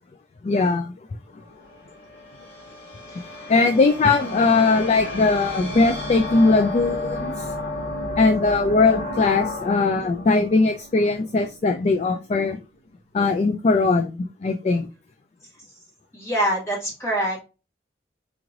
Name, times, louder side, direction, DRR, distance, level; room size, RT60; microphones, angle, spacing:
voice 1, 0.4-0.9 3.5-7.4 8.2-12.6 13.1-14.2 14.4-14.9, left 3 dB, 35° left, 6 dB, 0.3 m, -20 dB
cymbal resonances, 1.4-11.7, left 2 dB, 75° left, 1.9 m, -32 dB
voice 2, 3.1-3.5 16.1-17.4, right 1 dB, 15° left, -3 dB, 1.6 m, -26 dB
4.9 x 3.1 x 2.5 m, 0.31 s
head